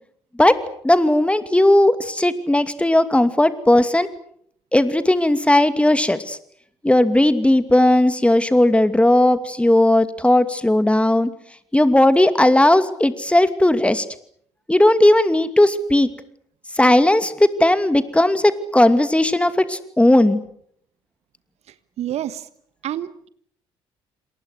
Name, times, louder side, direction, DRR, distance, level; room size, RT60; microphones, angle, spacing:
voice 1, 0.8-4.1 4.7-6.4 6.8-11.3 11.7-14.1 14.7-16.1 16.7-20.4, left 1 dB, 10° left, 12 dB, 2.5 m, -16 dB
voice 2, 22.0-22.5 22.8-23.3, right 11 dB, 55° right, 15 dB, 1.3 m, -28 dB
28.0 x 27.5 x 6.6 m, 0.66 s
figure-of-eight pair, 45°, 13 cm